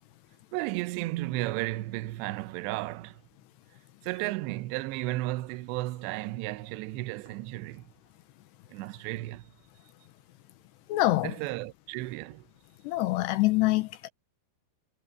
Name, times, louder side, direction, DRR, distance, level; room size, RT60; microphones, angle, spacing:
voice 1, 0.5-3.2 4.0-7.9 8.7-9.4 11.2-12.4, right 18 dB, 85° right, 2.9 m, -34 dB
voice 2, 10.9-11.3 12.8-14.1, left 17 dB, 80° left, 2.8 m, -25 dB
omnidirectional pair, 5.0 m